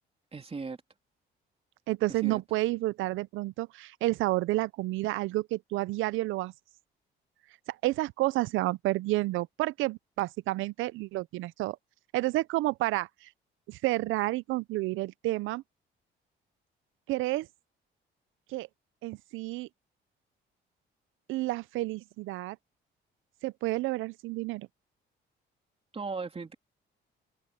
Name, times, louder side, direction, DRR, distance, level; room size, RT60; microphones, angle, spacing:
voice 1, 0.3-0.8 2.1-2.4 25.9-26.5, right 4 dB, 30° right, 3.3 m, -37 dB
voice 2, 1.9-6.5 7.8-11.8 12.1-13.3 13.7-15.6 17.1-17.5 18.5-18.7 19.0-19.7 21.3-22.6 23.4-24.7, right 18 dB, 90° right, 0.5 m, -30 dB
open air
cardioid pair, 90°, 20 cm